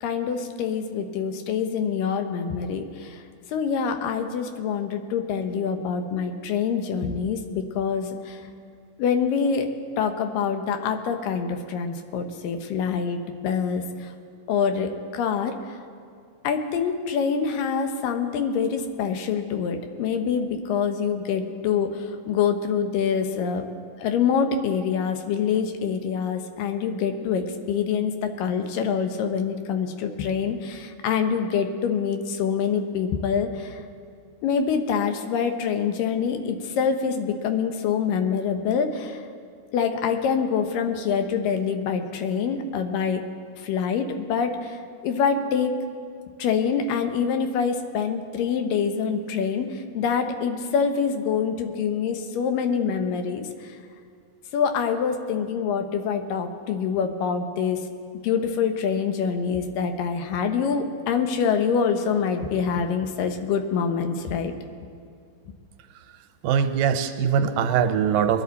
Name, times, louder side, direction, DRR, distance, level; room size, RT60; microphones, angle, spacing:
voice 1, 0.0-3.2 3.5-8.4 9.0-9.7 10.0-14.1 14.5-15.8 16.4-23.7 24.0-33.8 34.4-39.2 39.7-43.2 43.6-44.8 45.0-45.9 46.4-53.7 54.5-57.8 58.2-64.5, left 6 dB, 80° left, 6 dB, 2.5 m, -25 dB
voice 2, 66.4-68.4, right 7 dB, 90° right, 7 dB, 2.4 m, -22 dB
22.0 x 10.5 x 4.1 m, 2.3 s
omnidirectional pair, 3.9 m